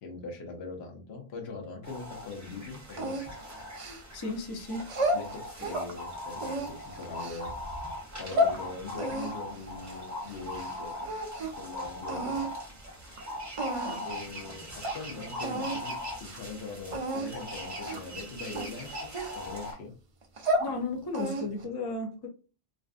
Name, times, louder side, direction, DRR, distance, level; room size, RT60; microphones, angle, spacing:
voice 1, 0.0-3.3 5.1-7.6 8.2-11.1 11.6-12.5 14.0-14.7 14.9-19.9, left 3 dB, 70° left, 2 dB, 1.0 m, -41 dB
sound 1, 1.8-19.7, left 1 dB, 20° right, 0.8 m, -40 dB
sound 2, 3.0-4.3 4.8-5.9 6.4-7.5 8.0-8.6 9.0-10.7 11.0-11.6 12.1-12.5 13.2-13.3 13.6-14.1 14.5-14.6 14.8-15.0 15.4-15.8 16.1-16.4 16.9-17.3 17.8-18.1 18.5-19.7 20.2-20.7 21.1-21.6, equal, 55° right, 0.3 m, -32 dB
voice 2, 4.1-4.9 20.6-22.3, left 3 dB, 40° left, 3 dB, 0.3 m, -34 dB
2.5 x 2.4 x 2.4 m, 0.35 s
omnidirectional pair, 1.1 m